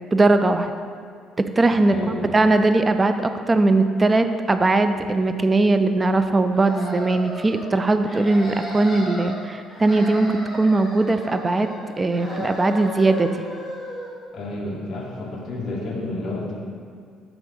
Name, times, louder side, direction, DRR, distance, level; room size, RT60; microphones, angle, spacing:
voice 1, 0.1-0.7 1.4-11.7 12.0-13.3, right 2 dB, 20° right, 9 dB, 0.4 m, -20 dB
voice 2, 1.9-2.4 14.3-16.5, left 1 dB, 40° left, -3 dB, 1.1 m, -30 dB
sound 1, 6.5-7.7 8.0-9.4 9.7-11.8 12.1-14.1, left 1 dB, 5° left, 1.7 m, -35 dB
8.5 x 3.6 x 5.2 m, 2.1 s
cardioid pair, 135°, 0 cm